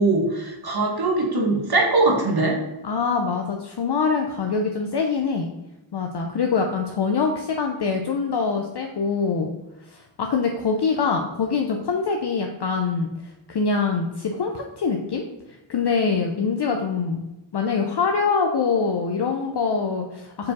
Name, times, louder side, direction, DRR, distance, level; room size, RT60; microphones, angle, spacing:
voice 1, 0.0-2.6, right 2 dB, 50° right, 0 dB, 1.4 m, -21 dB
voice 2, 2.8-5.5 5.9-9.5 9.8-13.1 13.5-15.2 15.7-17.2 17.5-20.5, left 5 dB, 55° left, 3 dB, 0.6 m, -24 dB
4.7 x 4.7 x 4.1 m, 0.96 s
wide cardioid pair, 110°, 49 cm